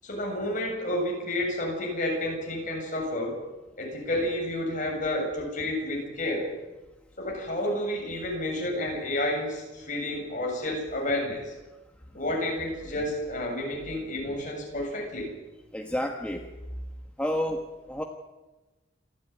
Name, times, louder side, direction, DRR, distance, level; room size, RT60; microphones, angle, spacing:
voice 1, 0.0-3.4 3.8-6.5 7.2-11.5 12.1-15.3, left 1 dB, 40° left, -1 dB, 7.7 m, -30 dB
voice 2, 15.7-16.5 17.2-18.0, equal, 5° left, 2 dB, 1.3 m, -30 dB
27.5 x 12.0 x 9.6 m, 1.1 s
head